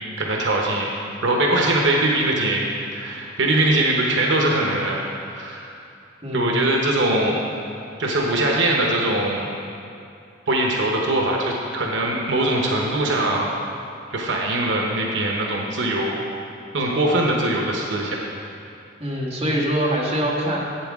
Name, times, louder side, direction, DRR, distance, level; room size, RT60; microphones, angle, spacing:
voice 1, 0.2-0.9 1.2-5.0 5.3-5.7 6.3-7.4 8.0-9.5 10.5-13.5 14.1-16.2 16.7-18.2, right 1 dB, 70° right, -1 dB, 1.0 m, -21 dB
voice 2, 6.2-6.6 19.0-20.6, equal, 30° right, -4 dB, 1.4 m, -24 dB
11.5 x 8.4 x 3.6 m, 2.5 s
head